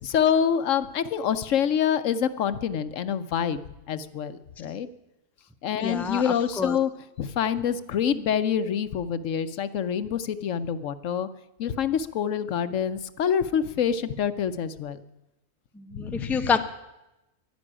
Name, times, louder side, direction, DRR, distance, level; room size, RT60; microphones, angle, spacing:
voice 1, 0.0-3.6 3.9-4.9 5.6-6.9 7.2-11.3 11.6-15.0 15.9-16.5, left 8 dB, 70° left, 13 dB, 1.1 m, -26 dB
voice 2, 5.8-6.8 15.8-16.6, left 5 dB, ahead, 7 dB, 0.6 m, -28 dB
11.5 x 11.5 x 9.9 m, 0.95 s
omnidirectional pair, 1.4 m